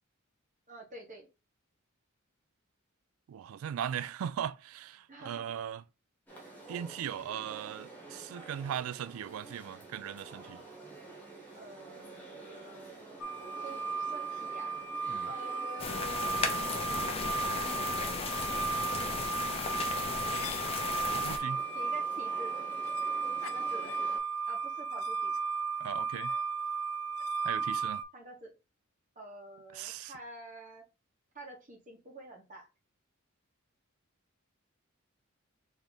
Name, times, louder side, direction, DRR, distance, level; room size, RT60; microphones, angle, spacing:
voice 1, 0.7-1.3 5.1-5.6 11.5-13.0 13.6-14.7 15.2-18.2 21.7-22.5 23.4-23.9 24.5-25.3 28.1-28.5 29.1-30.8 31.3-32.7, right 1 dB, 35° right, 1.4 m, -48 dB
voice 2, 3.3-5.8 6.7-10.6 15.1-15.3 21.1-21.6 25.8-26.3 27.4-28.0 29.7-30.1, right 9 dB, 80° right, 0.3 m, -38 dB
sound 1, 6.3-24.2, right 3 dB, 10° left, 1.2 m, -49 dB
sound 2, 13.2-28.0, right 5 dB, 80° left, 0.5 m, -35 dB
sound 3, 15.8-21.4, left 4 dB, 30° left, 0.6 m, -35 dB
3.5 x 3.1 x 4.0 m
head